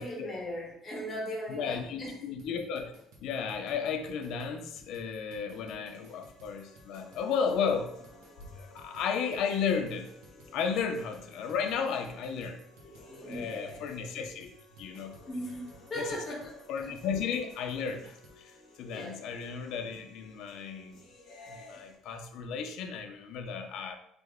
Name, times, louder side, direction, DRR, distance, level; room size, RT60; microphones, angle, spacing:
voice 1, 0.0-2.2 12.8-14.2 15.2-16.6 16.8-16.9 18.8-19.2, equal, 25° left, -4 dB, 1.1 m, -39 dB
voice 2, 1.5-2.9 3.2-7.9 8.6-10.1 10.5-12.6 13.3-14.5 14.8-15.1 16.0-16.2 16.7-18.5 18.8-21.0 21.5-24.0, left 6 dB, 65° left, 6 dB, 0.4 m, -34 dB
sound 1, 2.4-18.4, right 2 dB, 90° right, 0.9 m, -58 dB
sound 2, 5.9-21.9, left 2 dB, 85° left, 0.9 m, -55 dB
3.3 x 2.0 x 3.4 m, 0.73 s
cardioid pair, 150°, 0 cm